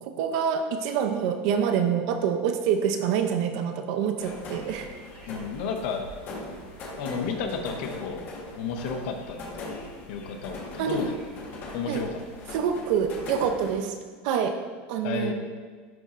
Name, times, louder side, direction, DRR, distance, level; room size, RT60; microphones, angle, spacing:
voice 1, 0.0-4.9 10.8-11.1 11.9-12.1 12.5-14.0 14.2-14.6 14.9-15.3, right 7 dB, 55° right, 6 dB, 0.6 m, -26 dB
sound 1, 4.2-13.7, left 2 dB, 35° left, 1.2 m, -40 dB
voice 2, 5.3-6.0 7.0-8.3 8.6-9.7 10.1-11.1 11.7-12.1 15.0-15.3, left 5 dB, 60° left, 4 dB, 0.8 m, -32 dB
10.5 x 4.1 x 2.5 m, 1.5 s
supercardioid pair, 165°, 6 cm